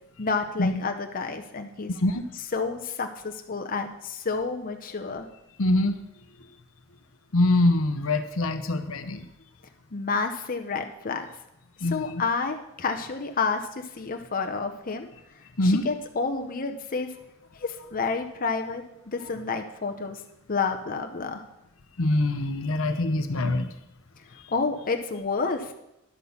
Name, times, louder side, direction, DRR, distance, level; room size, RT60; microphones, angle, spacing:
voice 1, 0.2-1.9 2.5-5.3 9.9-11.3 11.9-15.1 15.6-17.1 17.6-20.2 20.5-21.4 24.5-25.7, left 4 dB, 40° left, 5 dB, 0.8 m, -29 dB
voice 2, 5.6-6.0 7.3-9.3 11.8-12.2 15.6-15.8 22.0-23.7, left 2 dB, 70° left, 8 dB, 0.9 m, -24 dB
11.0 x 6.2 x 7.0 m, 0.86 s
head